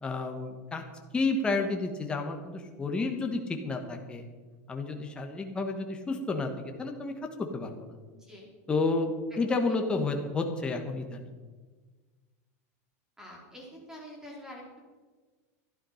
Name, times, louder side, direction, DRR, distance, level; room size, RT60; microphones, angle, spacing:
voice 1, 0.0-0.8 1.1-4.2 4.7-7.8 8.7-11.3, left 3 dB, 10° left, 3 dB, 1.2 m, -31 dB
voice 2, 8.2-8.5 9.5-9.6 13.2-14.8, equal, 5° right, -2 dB, 3.5 m, -46 dB
12.0 x 11.0 x 5.7 m, 1.4 s
supercardioid pair, 155°, 8 cm